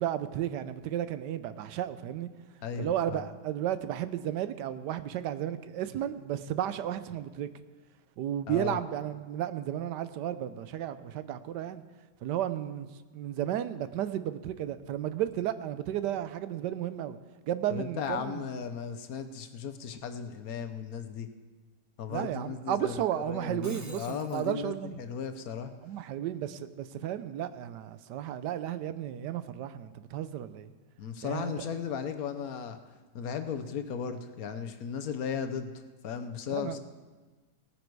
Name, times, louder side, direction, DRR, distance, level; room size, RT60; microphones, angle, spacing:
voice 1, 0.0-2.3 2.8-7.5 8.2-11.8 12.2-12.9 13.1-17.2 17.4-18.4 22.1-25.0 25.8-30.7 31.2-31.7 36.5-36.8, right 11 dB, 85° right, 12 dB, 1.3 m, -33 dB
voice 2, 2.6-3.3 8.5-8.8 17.7-21.3 22.0-25.7 31.0-32.8 33.1-35.7 36.0-36.8, left 7 dB, 65° left, 8 dB, 1.2 m, -36 dB
Shatter, 23.6-24.5, right 1 dB, 10° right, 0.9 m, -49 dB
18.0 x 9.3 x 4.7 m, 1.3 s
omnidirectional pair, 1.8 m